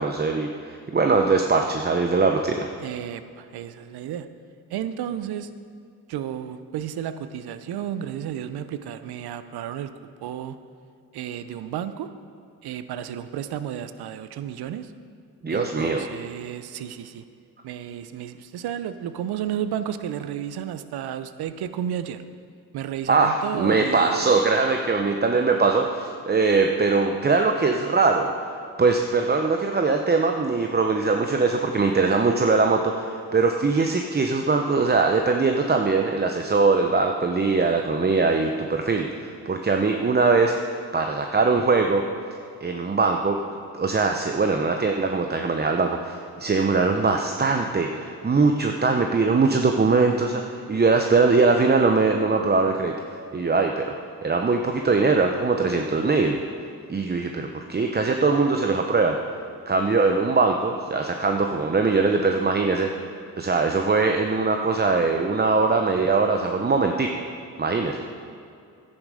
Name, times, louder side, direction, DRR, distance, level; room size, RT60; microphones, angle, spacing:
voice 1, 0.0-2.7 15.4-16.1 23.1-40.5 40.9-42.0 42.6-43.4 43.7-53.9 54.2-56.4 56.9-59.2 59.7-62.9 63.4-67.1 67.6-68.1, right 4 dB, 25° right, 4 dB, 0.8 m, -21 dB
voice 2, 2.8-4.3 4.7-5.5 6.1-9.9 10.2-10.6 11.1-12.1 12.6-14.9 15.5-17.2 17.6-22.2 22.7-24.2, right 10 dB, 70° right, 12 dB, 0.7 m, -32 dB
10.5 x 9.8 x 5.0 m, 2.4 s
supercardioid pair, 65°, 39 cm